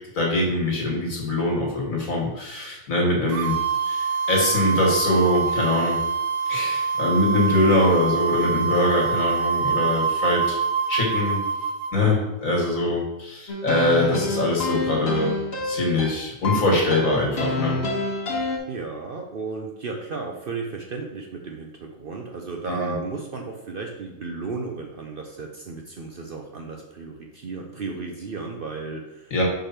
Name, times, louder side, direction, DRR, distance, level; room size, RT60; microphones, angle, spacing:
voice 1, 0.1-3.6 3.9-6.0 6.5-10.6 10.9-11.4 11.9-15.3 15.6-17.8 22.7-23.0 29.3-29.4, left 1 dB, 70° left, -1 dB, 2.0 m, -23 dB
sound 1, 3.3-11.9, right 5 dB, 75° right, 1.1 m, -25 dB
sound 2, 13.5-18.6, left 3 dB, 50° left, 1.4 m, -27 dB
voice 2, 18.7-29.3, right 4 dB, 50° right, 2 dB, 0.7 m, -34 dB
5.1 x 5.0 x 4.3 m, 0.96 s
omnidirectional pair, 1.4 m